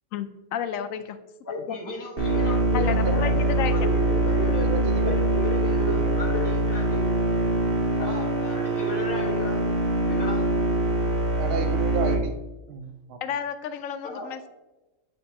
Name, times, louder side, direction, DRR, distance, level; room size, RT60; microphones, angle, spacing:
voice 1, 0.1-1.2 1.7-1.8 2.7-3.9 13.2-14.5, left 8 dB, 80° left, 11 dB, 1.0 m, -31 dB
voice 2, 1.4-2.8 3.1-3.3 3.7-7.0 8.0-9.6 10.1-10.4 14.0-14.5, left 1 dB, 15° left, -3 dB, 1.2 m, -33 dB
sound 1, 2.2-12.2, right 1 dB, 45° right, 1.4 m, -24 dB
voice 3, 2.7-3.6 4.6-5.3 5.6-6.2 11.4-13.2, right 4 dB, 60° right, 5 dB, 0.6 m, -32 dB
9.1 x 4.4 x 2.7 m, 1.0 s
omnidirectional pair, 1.4 m